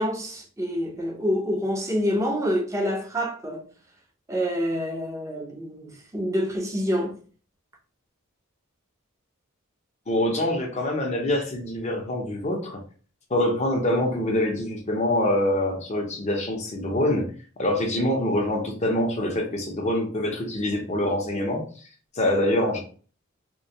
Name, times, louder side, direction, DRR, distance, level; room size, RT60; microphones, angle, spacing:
voice 1, 0.0-3.7 4.3-7.2, equal, 15° right, 0.5 m, -27 dB
voice 2, 10.1-12.8 13.3-17.3 17.6-21.6 22.1-22.8, left 1 dB, 35° left, 0.6 m, -25 dB
2.2 x 2.1 x 2.7 m
head